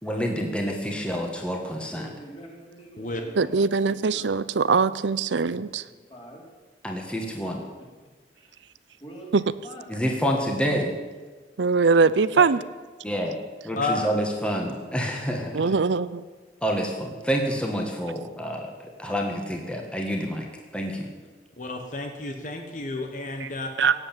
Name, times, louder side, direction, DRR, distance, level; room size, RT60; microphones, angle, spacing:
voice 1, 0.0-2.1 6.8-7.6 9.9-10.9 13.0-13.4 13.6-15.7 16.6-21.1, equal, 5° left, 1 dB, 1.7 m, -28 dB
voice 2, 1.9-4.3 5.8-6.4 7.8-7.9 8.3-8.6 9.0-10.0, right 1 dB, 30° left, -2 dB, 4.1 m, -45 dB
voice 3, 3.4-5.8 11.6-12.6 15.5-16.2 23.4-23.5 23.8-23.9, right 4 dB, 80° right, 16 dB, 0.6 m, -22 dB
voice 4, 13.8-14.1 21.6-23.7, left 2 dB, 45° left, 4 dB, 1.3 m, -31 dB
17.5 x 8.1 x 9.0 m, 1.3 s
head